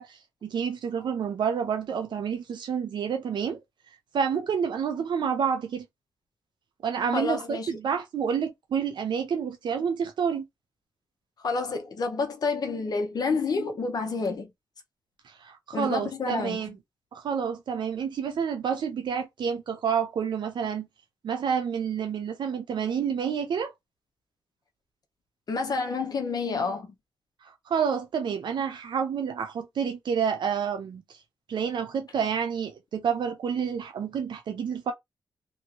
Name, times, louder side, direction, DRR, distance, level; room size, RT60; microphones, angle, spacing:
voice 1, 0.0-3.6 4.1-5.9 6.8-10.4 15.4-16.8 17.1-20.9 21.2-23.7 27.4-31.0 31.5-34.9, right 7 dB, 75° right, 0.6 m, -29 dB
voice 2, 7.1-7.7 11.4-14.5 15.7-16.6 25.5-26.9, left 4 dB, 55° left, 0.7 m, -29 dB
3.0 x 2.6 x 2.9 m
wide cardioid pair, 100°, 8 cm